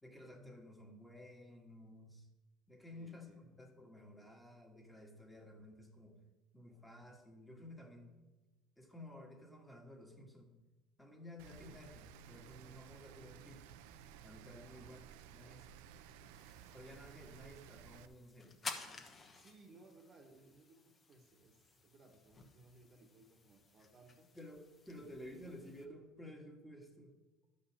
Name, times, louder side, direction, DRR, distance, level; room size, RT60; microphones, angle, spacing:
voice 1, 0.0-2.3 2.7-6.2 6.5-8.2 8.8-10.5 11.0-13.7 14.2-15.7 16.7-18.6 24.3-27.2, left 1 dB, 5° left, 1 dB, 1.6 m, -54 dB
voice 2, 2.9-3.5 11.6-11.9 14.6-15.0 17.2-17.4 19.0-24.3 24.9-25.8, right 3 dB, 35° right, 3 dB, 1.3 m, -63 dB
Rain, 11.4-18.1, right 9 dB, 85° right, 0.6 m, -56 dB
sound 1, 16.3-25.8, left 4 dB, 25° left, 1.2 m, -53 dB
12.0 x 5.2 x 7.3 m, 1.1 s
cardioid pair, 130°, 0 cm